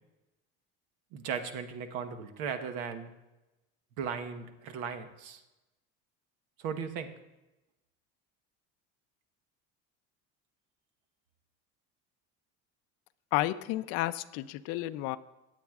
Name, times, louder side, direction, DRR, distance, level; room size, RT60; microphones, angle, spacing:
voice 1, 1.1-3.1 4.0-5.4 6.6-7.1, right 6 dB, 80° right, 9 dB, 1.0 m, -37 dB
voice 2, 13.3-15.2, left 16 dB, 55° left, 12 dB, 0.4 m, -31 dB
18.0 x 8.2 x 2.4 m, 1.0 s
cardioid pair, 175°, 30 cm